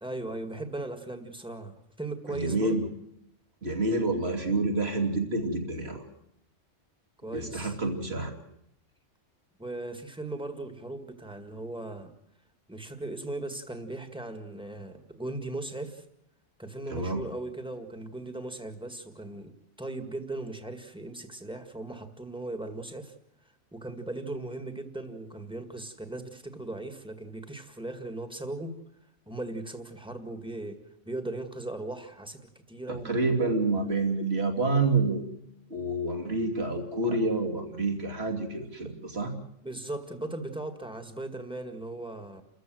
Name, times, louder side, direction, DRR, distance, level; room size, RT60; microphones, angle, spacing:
voice 1, 0.0-2.8 7.2-7.8 9.6-12.1 12.7-16.0 16.6-23.1 23.7-28.8 29.3-32.4 32.7-33.2 37.1-37.2 38.8-39.0 39.6-42.4, right 2 dB, 5° right, 7 dB, 1.9 m, -38 dB
voice 2, 2.3-2.8 3.6-6.0 7.3-8.4 16.9-17.2 32.9-35.2 35.7-39.3, right 2 dB, 55° right, 2 dB, 3.1 m, -28 dB
30.0 x 14.0 x 7.8 m, 0.78 s
omnidirectional pair, 1.2 m